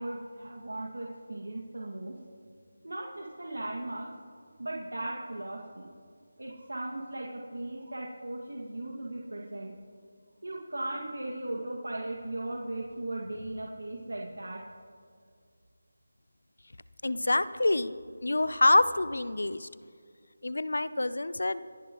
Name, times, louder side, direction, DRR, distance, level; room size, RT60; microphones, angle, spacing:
voice 1, 0.0-2.1 2.8-4.1 4.6-5.9 6.4-9.7 10.4-14.6, right 1 dB, 85° right, -2 dB, 2.1 m, -37 dB
voice 2, 17.0-17.9 18.2-19.7 20.4-21.6, left 2 dB, 80° left, 15 dB, 0.7 m, -26 dB
27.0 x 10.5 x 3.1 m, 2.2 s
figure-of-eight pair, 170°, 0 cm